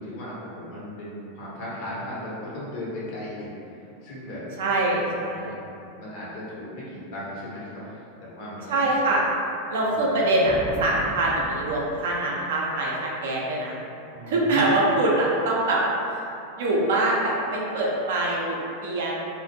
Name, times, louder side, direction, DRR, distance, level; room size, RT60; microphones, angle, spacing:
voice 1, 0.0-4.4 4.9-5.7 5.9-7.8 8.2-8.9 9.9-10.4 14.1-14.7, left 1 dB, 55° left, -7 dB, 0.8 m, -37 dB
voice 2, 4.6-5.5 8.7-9.2 9.7-13.8 14.3-15.8 16.6-19.1, right 2 dB, 65° right, -4 dB, 0.5 m, -24 dB
sound 1, 10.4-12.7, equal, 20° left, 0.7 m, -37 dB
2.4 x 2.1 x 2.6 m, 2.7 s
figure-of-eight pair, 90°, 0 cm